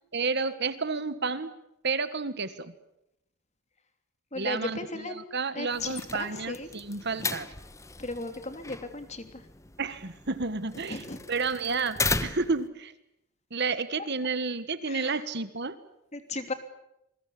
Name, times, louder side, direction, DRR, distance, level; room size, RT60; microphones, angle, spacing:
voice 1, 0.1-1.5 1.8-2.7 4.4-5.0 5.3-7.5 9.8-11.0 11.3-12.9 13.5-15.8, right 4 dB, 50° right, 13 dB, 1.5 m, -31 dB
voice 2, 4.3-5.1 5.5-6.7 8.0-9.4 10.7-11.2 14.9-15.2 16.1-16.5, left 2 dB, 30° left, 8 dB, 3.1 m, -36 dB
sound 1, 5.7-12.7, left 3 dB, 15° left, 1.0 m, -36 dB
28.5 x 22.0 x 8.6 m, 0.84 s
head